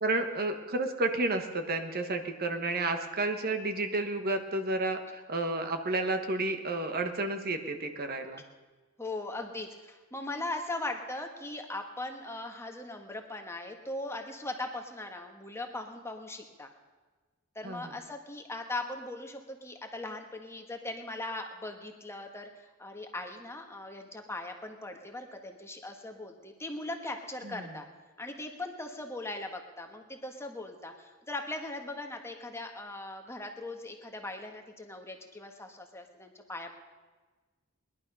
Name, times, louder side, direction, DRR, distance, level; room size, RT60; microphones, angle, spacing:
voice 1, 0.0-8.4 17.6-17.8 27.5-27.7, right 2 dB, 45° right, 6 dB, 1.2 m, -31 dB
voice 2, 9.0-16.7 17.5-27.9 28.2-36.7, left 2 dB, 10° left, 4 dB, 1.5 m, -39 dB
20.5 x 11.5 x 5.5 m, 1.3 s
head